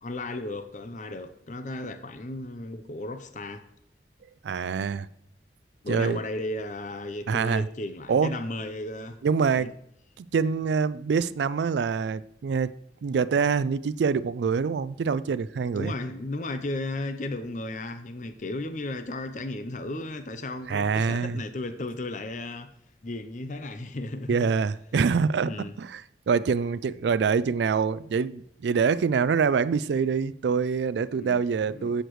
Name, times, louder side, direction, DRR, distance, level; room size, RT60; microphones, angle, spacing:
voice 1, 0.0-3.6 5.8-9.2 9.6-9.7 15.7-22.7 23.0-24.5 25.4-25.8 31.1-31.4 31.7-32.0, left 2 dB, 45° left, 0.7 m, -35 dB
voice 2, 4.4-5.1 5.9-6.2 7.3-7.7 8.1-8.3 9.2-9.7 10.2-15.9 20.7-21.4 24.3-25.5 25.8-26.0 26.3-32.0, right 5 dB, 75° right, 0.4 m, -25 dB
15.5 x 6.5 x 3.1 m
head